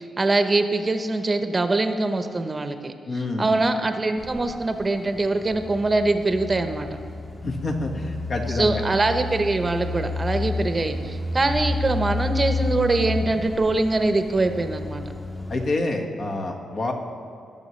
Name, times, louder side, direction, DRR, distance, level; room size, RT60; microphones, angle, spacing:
voice 1, 0.0-2.9 3.4-6.9 8.5-15.0, right 2 dB, 30° right, 8 dB, 0.8 m, -23 dB
voice 2, 3.1-3.6 7.4-8.8 15.5-16.9, left 2 dB, 55° left, 1 dB, 1.6 m, -27 dB
sound 1, 4.2-15.7, left 2 dB, 15° left, 1.0 m, -31 dB
20.0 x 7.0 x 3.2 m, 2.7 s
cardioid pair, 75°, 0 cm